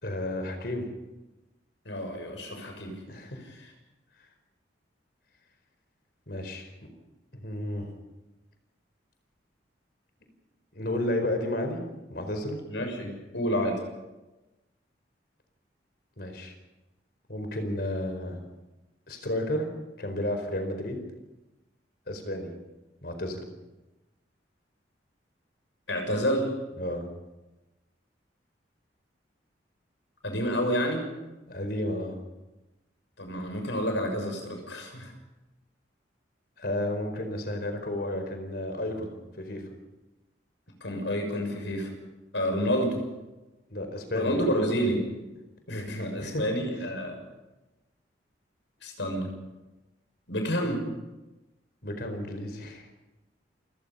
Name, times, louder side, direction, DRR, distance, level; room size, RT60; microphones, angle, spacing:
voice 1, 0.0-0.9 3.1-3.4 6.3-6.7 7.4-7.9 10.7-11.8 12.1-12.6 16.2-16.5 17.3-18.4 19.1-19.7 20.0-21.0 22.1-22.5 23.0-23.4 26.8-27.1 31.5-32.1 36.6-39.6 43.7-44.5 46.0-46.4 51.8-52.9, left 1 dB, 60° left, 6 dB, 4.6 m, -32 dB
voice 2, 1.8-3.0 3.6-3.7 12.7-13.8 25.9-26.5 30.2-31.1 33.2-35.1 40.8-41.9 42.3-43.0 44.1-45.1 45.7-47.2 48.8-49.3 50.3-50.9, equal, 90° left, 4 dB, 6.6 m, -29 dB
28.5 x 18.0 x 5.6 m, 1.1 s
head